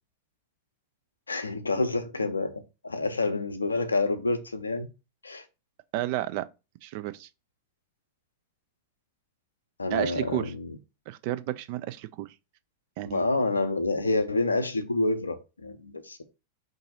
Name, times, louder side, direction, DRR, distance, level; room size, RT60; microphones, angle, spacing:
voice 1, 1.3-4.9 5.2-5.4 9.8-10.8 13.1-16.2, left 2 dB, 80° left, 0.5 m, -28 dB
voice 2, 5.9-6.5 6.8-7.3 9.9-10.5 11.1-12.3 13.0-13.2, right 14 dB, 45° right, 0.3 m, -31 dB
3.7 x 2.6 x 4.1 m
figure-of-eight pair, 90°, 0 cm